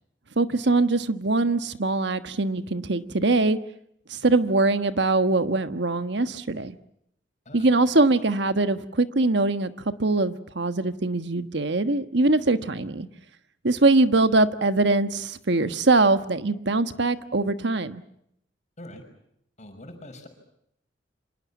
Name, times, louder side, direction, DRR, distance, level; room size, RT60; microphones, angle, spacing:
voice 1, 0.4-3.6 4.1-6.8 7.5-9.7 10.0-13.1 13.6-18.0, right 2 dB, 65° right, 11 dB, 1.4 m, -22 dB
voice 2, 19.6-20.3, left 1 dB, 40° left, 6 dB, 5.9 m, -43 dB
28.0 x 26.0 x 7.3 m, 0.75 s
head